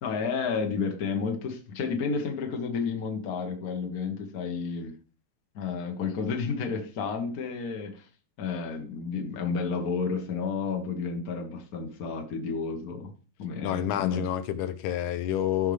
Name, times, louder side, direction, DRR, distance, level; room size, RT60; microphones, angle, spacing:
voice 1, 0.0-4.9 5.5-8.0 8.4-13.1 13.4-14.3, left 5 dB, 40° left, 1.4 m, -31 dB
voice 2, 13.6-15.7, left 11 dB, 85° left, 2.2 m, -28 dB
15.0 x 5.5 x 3.3 m
omnidirectional pair, 3.4 m